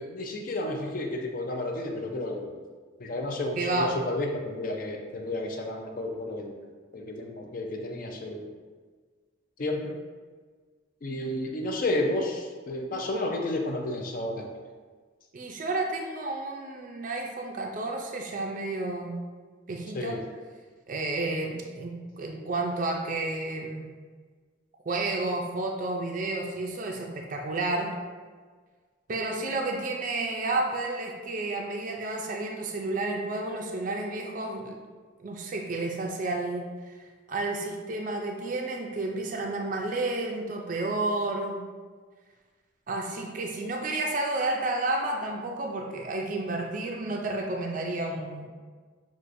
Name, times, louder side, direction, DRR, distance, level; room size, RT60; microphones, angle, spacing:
voice 1, 0.0-2.5 3.0-6.6 6.9-8.4 9.6-9.9 11.0-14.5 19.9-20.2, left 1 dB, 45° left, 2 dB, 0.4 m, -31 dB
voice 2, 3.6-3.9 15.3-19.2 19.7-20.2 20.9-23.9 24.9-27.9 29.1-34.8 35.2-36.7 37.3-41.6 42.9-48.5, right 2 dB, 40° right, 1 dB, 0.4 m, -31 dB
6.1 x 2.5 x 2.5 m, 1.5 s
head